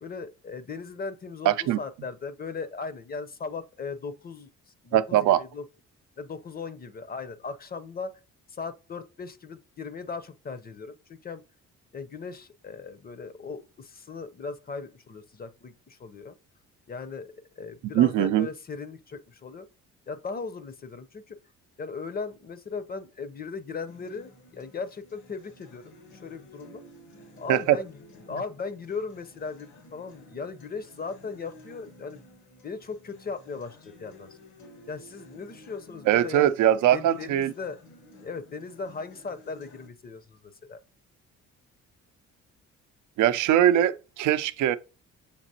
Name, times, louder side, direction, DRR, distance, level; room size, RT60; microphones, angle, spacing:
voice 1, 0.0-5.6 6.2-8.1 8.5-11.4 11.9-16.4 16.9-19.7 20.1-21.4 21.8-26.8 27.4-28.0 28.3-32.2 32.6-34.4 34.9-36.5 36.9-37.8 38.2-40.8, left 4 dB, 30° left, 0.6 m, -38 dB
voice 2, 1.5-1.8 4.9-5.4 17.9-18.5 27.5-27.8 36.1-37.5 43.2-44.8, right 12 dB, 80° right, 0.5 m, -21 dB
Acoustic guitar, 23.9-39.9, left 1 dB, 80° left, 1.4 m, -53 dB
6.6 x 2.9 x 2.7 m
cardioid pair, 90°, 30 cm